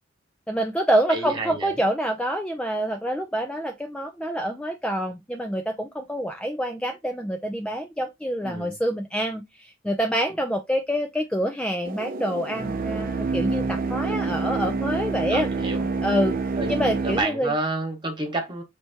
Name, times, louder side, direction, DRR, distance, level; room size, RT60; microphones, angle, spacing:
voice 1, 0.5-15.5 16.0-16.4 16.7-17.5, equal, 5° left, 0.4 m, -26 dB
voice 2, 1.1-1.7 8.4-8.7 15.3-15.8 16.6-18.6, right 2 dB, 25° right, 1.4 m, -29 dB
sound 1, 11.8-17.2, right 4 dB, 45° right, 0.6 m, -27 dB
4.4 x 3.3 x 2.8 m
head